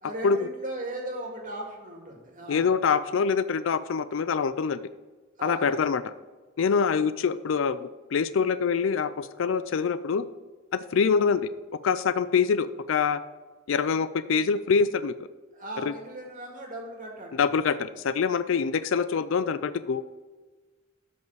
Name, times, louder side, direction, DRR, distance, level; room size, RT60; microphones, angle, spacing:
voice 1, 0.0-2.7 5.4-5.8 15.5-17.5, right 1 dB, 40° right, 0 dB, 2.1 m, -37 dB
voice 2, 2.5-4.8 5.4-6.0 6.6-10.3 10.7-11.5 11.8-13.2 13.7-15.1 15.8-15.9 17.3-20.0, left 6 dB, 75° left, 14 dB, 0.4 m, -25 dB
13.0 x 5.5 x 4.7 m, 1.3 s
head